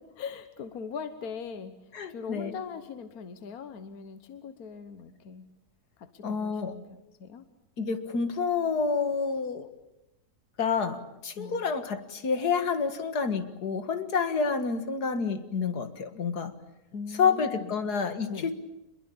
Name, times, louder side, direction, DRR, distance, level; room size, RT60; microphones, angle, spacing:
voice 1, 0.2-1.7 2.1-5.5 6.0-6.9 7.2-7.4 11.3-11.6 16.9-17.8 18.3-18.5, left 5 dB, 70° left, 10 dB, 1.6 m, -40 dB
voice 2, 1.9-2.5 6.2-6.8 7.8-9.7 10.6-16.5 17.2-18.6, left 5 dB, 85° left, 10 dB, 2.3 m, -28 dB
26.0 x 22.0 x 8.6 m, 0.90 s
omnidirectional pair, 1.7 m